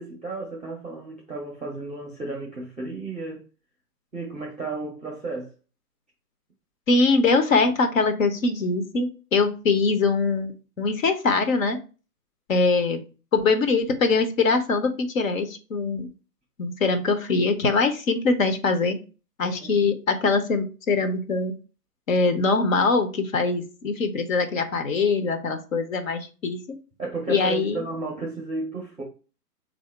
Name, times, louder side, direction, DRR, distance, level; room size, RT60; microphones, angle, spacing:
voice 1, 0.0-3.5 4.1-5.5 19.4-19.8 27.0-29.0, right 3 dB, ahead, 0.5 m, -33 dB
voice 2, 6.9-10.5 10.8-11.8 12.5-13.0 13.3-16.1 16.6-19.0 19.4-21.5 22.1-26.6 27.3-27.8, left 4 dB, 55° left, 0.9 m, -22 dB
3.6 x 2.8 x 4.5 m
hypercardioid pair, 145°, 47 cm